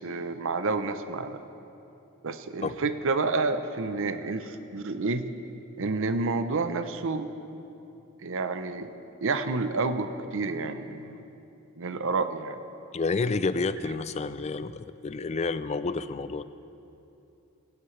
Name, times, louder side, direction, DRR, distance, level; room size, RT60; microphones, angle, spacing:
voice 1, 0.0-1.4 2.2-5.2 5.8-7.3 8.2-8.9 9.2-11.2 11.8-12.6, right 3 dB, 60° right, 10 dB, 0.7 m, -29 dB
voice 2, 12.9-16.4, left 4 dB, 30° left, 14 dB, 0.4 m, -29 dB
18.0 x 16.5 x 3.3 m, 2.8 s
head